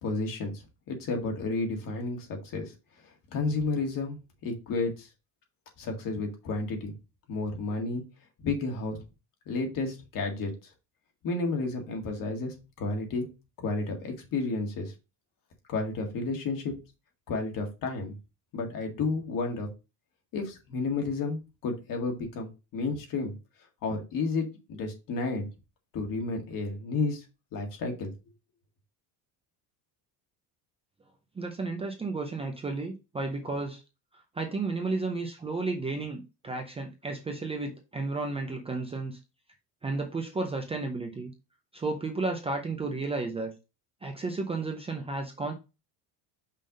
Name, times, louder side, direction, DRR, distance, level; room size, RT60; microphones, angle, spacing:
voice 1, 0.0-0.5 0.9-2.7 3.3-5.1 5.8-6.9 7.3-8.0 8.4-9.0 9.5-10.5 11.2-13.3 13.6-14.9 15.7-16.7 17.3-18.1 18.5-19.7 20.3-23.3 23.8-25.5 25.9-27.2 27.5-28.1, left 3 dB, 50° left, 2 dB, 1.9 m, -31 dB
voice 2, 31.4-33.8 34.1-39.2 39.8-41.3 41.7-43.5 44.0-45.5, right 3 dB, 15° right, 3 dB, 0.5 m, -33 dB
5.6 x 3.4 x 5.2 m, 0.29 s
cardioid pair, 160°, 42 cm